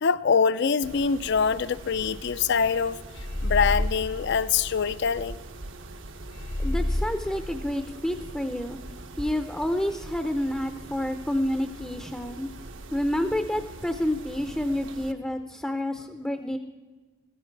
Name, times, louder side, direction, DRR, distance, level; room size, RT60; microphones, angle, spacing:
voice 1, 0.0-3.0 3.4-5.4, left 6 dB, 55° left, 17 dB, 0.4 m, -24 dB
Mechanisms, 0.8-15.1, right 2 dB, 70° right, 0.9 m, -43 dB
sound 1, 3.2-5.3 6.3-8.4, left 1 dB, 85° left, 1.9 m, -30 dB
voice 2, 6.6-8.8 9.2-12.5 12.9-16.6, left 1 dB, 5° left, 6 dB, 0.5 m, -29 dB
15.5 x 14.0 x 4.6 m, 1.3 s
head